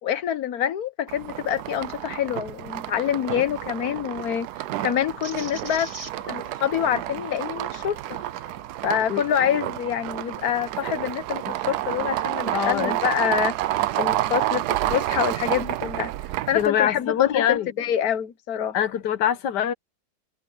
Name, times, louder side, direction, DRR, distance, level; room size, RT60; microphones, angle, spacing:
voice 1, 0.0-4.5 4.8-5.9 6.3-8.0 8.8-16.1 16.5-18.8, left 9 dB, 65° left, 1.6 m, -26 dB
sound 1, 1.1-16.7, right 14 dB, 75° right, 1.1 m, -29 dB
sound 2, 5.2-10.8 11.3-12.5, right 2 dB, 20° right, 1.8 m, -45 dB
voice 2, 12.5-12.9 16.5-17.7 18.7-19.7, left 9 dB, 85° left, 1.6 m, -24 dB
omnidirectional pair, 1.8 m